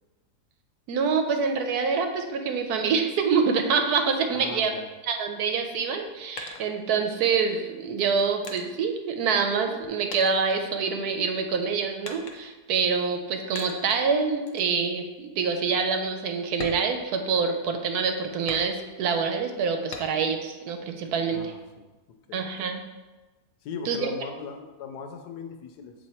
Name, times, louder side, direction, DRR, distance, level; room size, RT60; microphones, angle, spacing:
voice 1, 0.9-4.7 5.1-21.4 22.3-22.9 23.9-24.1, right 5 dB, 75° right, 5 dB, 1.1 m, -26 dB
voice 2, 4.3-4.9 21.3-21.9 22.3-22.5 23.6-25.9, left 5 dB, 80° left, 6 dB, 1.2 m, -38 dB
sound 1, 5.9-7.3 8.0-9.8 10.1-11.3 12.0-12.7 13.6-14.0 14.5-14.7 15.2-15.3 15.7-15.9 16.5-17.7 18.5-19.1 19.9-20.4 20.8-21.7, left 4 dB, 60° left, 0.9 m, -42 dB
7.2 x 3.1 x 4.2 m, 1.2 s
omnidirectional pair, 1.8 m